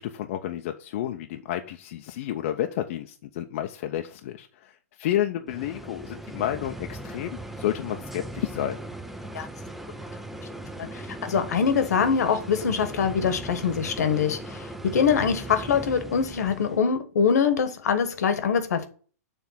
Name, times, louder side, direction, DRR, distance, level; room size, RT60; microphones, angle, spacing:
voice 1, 0.0-8.8, left 12 dB, 50° left, 0.6 m, -31 dB
sound 1, 5.5-16.8, right 1 dB, ahead, 0.5 m, -38 dB
voice 2, 10.8-18.9, left 6 dB, 75° left, 1.2 m, -24 dB
7.2 x 3.4 x 5.7 m
hypercardioid pair, 130°, 9 cm